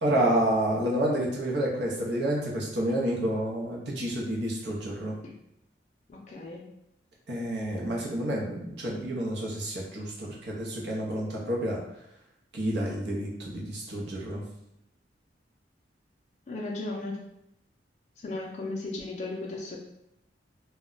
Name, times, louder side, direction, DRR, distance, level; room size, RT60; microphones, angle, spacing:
voice 1, 0.0-5.2 7.3-11.8 12.5-14.4, right 1 dB, 65° right, -2 dB, 0.7 m, -29 dB
voice 2, 6.1-6.7 16.5-17.2 18.2-19.8, left 2 dB, 40° left, -2 dB, 0.4 m, -35 dB
2.2 x 2.1 x 3.7 m, 0.82 s
head